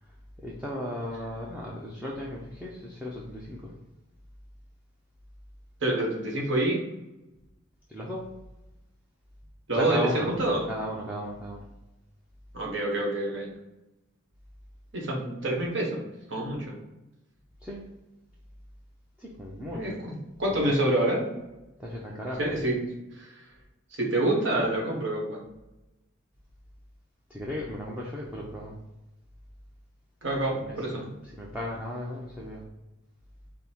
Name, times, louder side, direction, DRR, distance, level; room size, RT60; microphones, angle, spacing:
voice 1, 0.4-3.7 7.9-8.3 9.7-10.3 10.6-11.6 17.6-17.8 19.2-20.0 20.5-20.7 21.8-22.4 27.3-28.8 30.5-32.6, equal, 5° right, -4 dB, 0.5 m, -36 dB
voice 2, 5.8-6.8 9.7-10.7 12.5-13.5 14.9-16.0 16.3-16.7 19.7-21.3 22.4-22.8 23.2-23.3 24.0-25.4 30.2-31.1, right 1 dB, 65° right, -2 dB, 1.2 m, -27 dB
5.3 x 2.1 x 4.4 m, 1.0 s
head